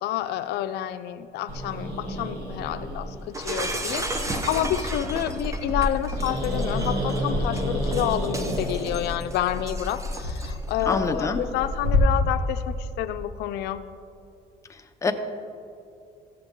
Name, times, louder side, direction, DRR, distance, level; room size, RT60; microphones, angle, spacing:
voice 1, 0.0-13.8, left 12 dB, 80° left, 10 dB, 0.4 m, -29 dB
Growling, 1.5-12.0, left 1 dB, 70° right, 2.3 m, -30 dB
Shatter, 3.3-10.7, right 1 dB, 20° right, 0.8 m, -34 dB
voice 2, 10.9-11.4 15.0-15.1, left 3 dB, 20° left, 5 dB, 0.7 m, -24 dB
14.5 x 7.7 x 3.7 m, 2.5 s
cardioid pair, 110°, 17 cm